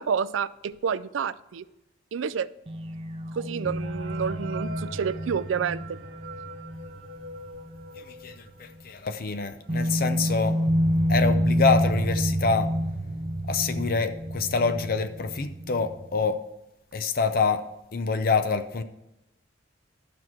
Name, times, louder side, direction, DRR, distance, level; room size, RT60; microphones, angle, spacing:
voice 1, 0.0-1.6 2.1-2.5 3.3-6.0, right 6 dB, 80° right, 17 dB, 0.4 m, -29 dB
sound 1, 2.7-8.1 8.4-8.5 9.7-16.2, equal, 30° right, 0.6 m, -28 dB
sound 2, 3.7-9.2 9.6-9.7 9.9-10.1 10.8-10.9 11.3-11.6, right 2 dB, 65° right, 1.2 m, -44 dB
voice 2, 8.0-10.6 11.1-12.7 13.5-16.4 16.9-17.6 17.9-18.8, left 4 dB, 50° left, 10 dB, 0.6 m, -26 dB
12.0 x 6.1 x 4.4 m, 0.94 s
head